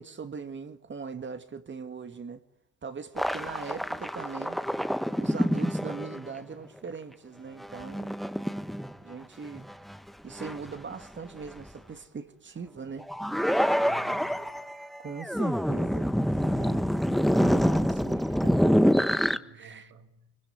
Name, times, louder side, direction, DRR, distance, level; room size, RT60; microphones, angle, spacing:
voice 1, 0.0-2.4 2.8-4.6 5.2-8.2 9.0-9.7 10.2-13.1 15.0-16.1 16.4-16.8 17.1-19.9, right 5 dB, 40° right, 2.1 m, -41 dB
sound 1, 3.2-6.3 7.6-9.1 9.6-10.0 10.3-10.9 11.6-11.7 13.0-19.4, equal, ahead, 1.3 m, -26 dB
voice 2, 13.8-14.7 16.5-17.0 19.2-20.4, right 3 dB, 90° right, 2.6 m, -52 dB
25.5 x 23.0 x 9.8 m
cardioid pair, 90°, 30 cm